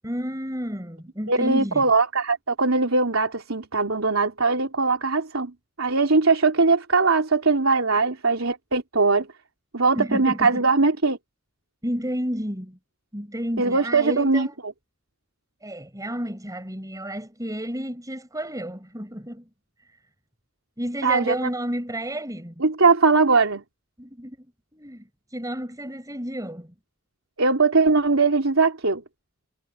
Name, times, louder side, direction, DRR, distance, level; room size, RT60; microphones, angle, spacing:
voice 1, 0.0-1.8 9.9-10.7 11.8-12.8 13.1-14.5 15.6-19.4 20.8-22.6 24.0-24.5 24.7-25.1 25.3-26.7, equal, 15° right, 6.5 m, -31 dB
voice 2, 1.3-5.5 5.8-9.3 9.7-11.2 13.6-14.7 21.0-21.3 22.6-23.6 27.4-29.0, right 3 dB, 85° right, 3.4 m, -20 dB
head